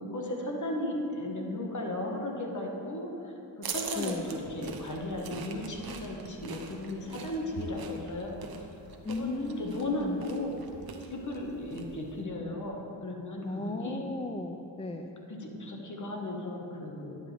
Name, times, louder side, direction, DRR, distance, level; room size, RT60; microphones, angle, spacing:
voice 1, 0.0-8.7 9.1-10.6 11.1-14.1 15.3-17.2, left 1 dB, 40° left, 0 dB, 1.5 m, -35 dB
sound 1, 3.6-12.2, right 5 dB, 50° right, 1.0 m, -43 dB
voice 2, 3.9-4.3 9.0-10.3 13.4-15.1, left 2 dB, 15° left, 4 dB, 0.4 m, -36 dB
11.0 x 7.8 x 3.4 m, 2.9 s
cardioid pair, 65°, 45 cm